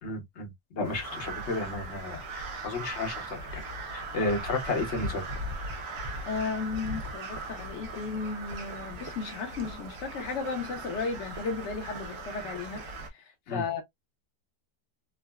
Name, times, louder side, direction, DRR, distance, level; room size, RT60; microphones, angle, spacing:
voice 1, 0.0-3.6 3.9-5.2 13.5-13.6, left 2 dB, 50° left, 1.0 m, -33 dB
Crow, 0.8-13.1, right 2 dB, 65° right, 1.2 m, -39 dB
voice 2, 6.3-12.8 13.1-13.8, left 5 dB, 65° left, 0.7 m, -34 dB
3.6 x 2.1 x 2.3 m
omnidirectional pair, 1.9 m